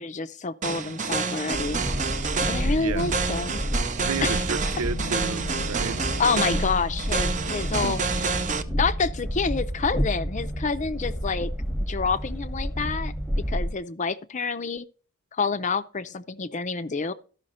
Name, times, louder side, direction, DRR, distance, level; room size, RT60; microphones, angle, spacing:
voice 1, 0.0-1.8 2.5-3.6 4.2-4.4 6.2-8.0 8.7-11.5 11.9-14.9 15.3-17.1, left 4 dB, 35° left, 0.6 m, -28 dB
sound 1, 0.6-8.6, right 4 dB, 35° right, 0.7 m, -28 dB
Train, 1.5-13.7, equal, 5° left, 1.0 m, -30 dB
voice 2, 2.5-3.2 4.0-6.0 7.8-8.0, right 5 dB, 80° right, 0.5 m, -32 dB
Bass guitar, 4.9-11.1, left 2 dB, 75° left, 0.7 m, -43 dB
13.5 x 5.8 x 4.2 m
head